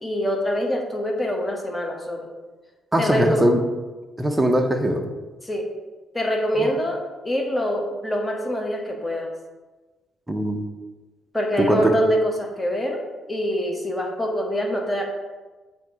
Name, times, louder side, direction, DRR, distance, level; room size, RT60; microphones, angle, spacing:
voice 1, 0.0-2.3 3.0-3.4 5.4-5.7 6.1-9.3 11.3-13.0 13.3-15.0, equal, 10° left, 1 dB, 1.0 m, -25 dB
voice 2, 2.9-3.6 4.2-5.0 6.6-6.7 10.3-10.6 11.7-11.9, equal, 10° right, 4 dB, 0.7 m, -20 dB
7.5 x 2.8 x 4.7 m, 1.2 s
cardioid pair, 90°, 0 cm